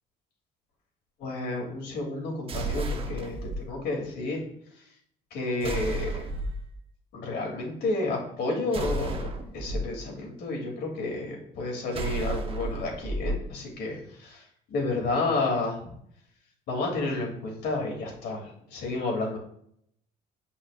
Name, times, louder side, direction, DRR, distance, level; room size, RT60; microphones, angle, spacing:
voice 1, 1.2-4.4 5.3-6.2 7.1-9.3 9.5-14.4 14.7-15.8 16.7-19.4, left 2 dB, 75° left, 0 dB, 3.2 m, -31 dB
sound 1, 2.5-3.6 5.6-6.7 8.7-9.8 11.9-13.4, right 2 dB, 35° right, 1.2 m, -32 dB
16.0 x 5.5 x 2.6 m, 0.70 s
cardioid pair, 110°, 17 cm